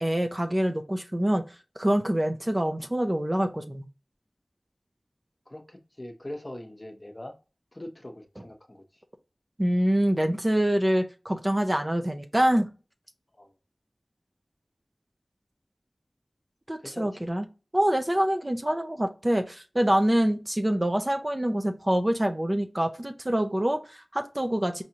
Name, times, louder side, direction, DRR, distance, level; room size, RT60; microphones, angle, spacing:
voice 1, 0.0-1.4 1.8-3.9 9.6-12.7 16.7-17.4 17.7-24.8, right 1 dB, 30° right, 0.6 m, -25 dB
voice 2, 5.5-7.3 7.7-8.8 13.4-13.5 16.8-17.3, left 1 dB, 35° left, 0.8 m, -42 dB
4.7 x 2.7 x 2.8 m
wide cardioid pair, 50°, 0 cm